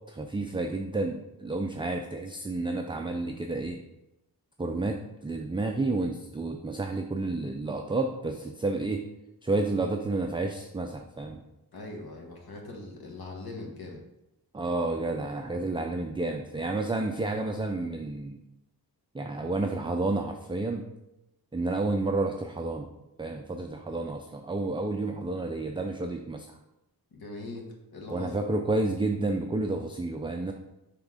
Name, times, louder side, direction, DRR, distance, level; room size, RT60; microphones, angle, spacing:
voice 1, 0.1-3.8 4.6-9.1 9.4-11.4 14.5-18.4 19.1-20.8 21.5-22.9 23.2-26.5 28.1-30.5, right 2 dB, 15° right, 3 dB, 0.3 m, -30 dB
voice 2, 11.7-14.0 27.1-27.7 27.9-28.3, left 2 dB, 65° left, 0 dB, 1.4 m, -41 dB
5.9 x 3.5 x 4.9 m, 0.90 s
wide cardioid pair, 140°, 39 cm